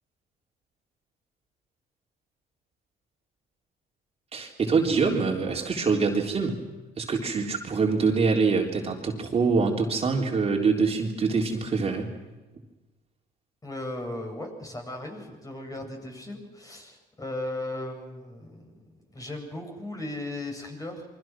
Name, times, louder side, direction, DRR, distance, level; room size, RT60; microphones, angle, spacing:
voice 1, 4.3-6.6 7.0-12.1, right 4 dB, 35° right, 0 dB, 3.8 m, -25 dB
voice 2, 13.6-21.1, left 1 dB, 20° left, 2 dB, 7.7 m, -37 dB
28.0 x 24.5 x 6.2 m, 1.2 s
cardioid pair, 110°, 17 cm